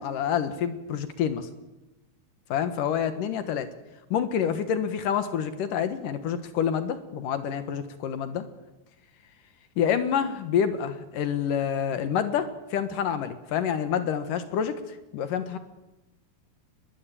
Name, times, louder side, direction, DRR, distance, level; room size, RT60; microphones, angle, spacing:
voice 1, 0.0-1.5 2.5-3.7 4.1-8.4 9.8-14.7 15.1-15.6, left 8 dB, 70° left, 10 dB, 2.8 m, -27 dB
24.0 x 21.0 x 8.7 m, 1.0 s
omnidirectional pair, 4.2 m